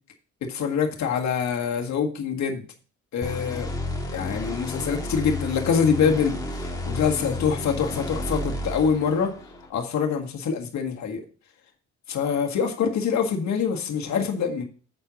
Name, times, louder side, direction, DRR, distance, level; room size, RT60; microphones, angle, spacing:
voice 1, 0.4-2.6 3.1-3.7 4.1-9.3 9.7-11.2 12.1-14.6, left 6 dB, 65° left, 2 dB, 1.8 m, -25 dB
sound 1, 3.2-9.7, left 2 dB, 10° left, 1.7 m, -32 dB
7.9 x 4.5 x 6.2 m, 0.40 s
cardioid pair, 90°, 30 cm